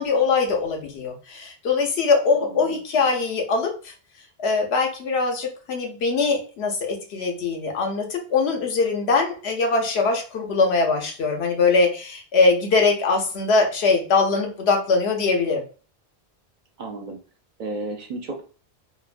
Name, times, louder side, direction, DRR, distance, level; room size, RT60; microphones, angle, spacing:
voice 1, 0.0-3.9 4.4-15.6, left 4 dB, 85° left, 2 dB, 1.0 m, -22 dB
voice 2, 2.4-2.8 16.8-17.2 17.6-18.4, right 2 dB, 55° right, 2 dB, 0.6 m, -33 dB
3.0 x 2.1 x 2.4 m, 0.37 s
omnidirectional pair, 1.1 m